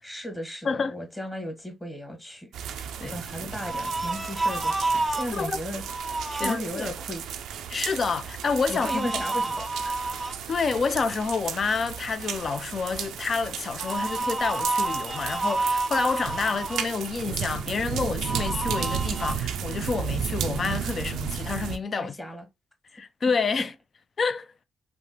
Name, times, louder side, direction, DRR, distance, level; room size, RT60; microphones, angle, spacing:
voice 1, 0.0-2.5 3.0-7.2 7.7-7.9 8.7-10.2 22.0-22.4, left 1 dB, 15° left, 1.3 m, -36 dB
voice 2, 0.6-0.9 3.0-3.5 5.3-5.6 6.4-6.9 7.7-9.1 10.5-22.2 22.9-23.7 24.2-24.5, left 5 dB, 50° left, 0.3 m, -28 dB
sound 1, 2.5-21.8, right 8 dB, 80° right, 0.3 m, -34 dB
sound 2, 3.6-5.3 5.8-6.5 8.7-10.4 13.8-16.9 18.2-19.3, right 2 dB, 10° right, 0.6 m, -29 dB
3.2 x 2.0 x 2.7 m
supercardioid pair, 50°, 0 cm